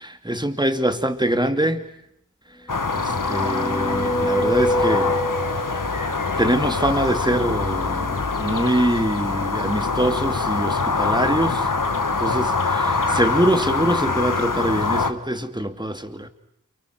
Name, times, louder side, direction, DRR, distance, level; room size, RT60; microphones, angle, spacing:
voice 1, 0.0-1.8 2.9-5.1 5.5-5.7 6.4-11.7 12.2-16.3, right 1 dB, 15° right, 2.6 m, -24 dB
sound 1, 2.7-15.1, left 4 dB, 80° left, 1.9 m, -24 dB
sound 2, 2.9-5.9, equal, 10° left, 1.9 m, -25 dB
29.5 x 29.0 x 6.1 m
wide cardioid pair, 50°, 32 cm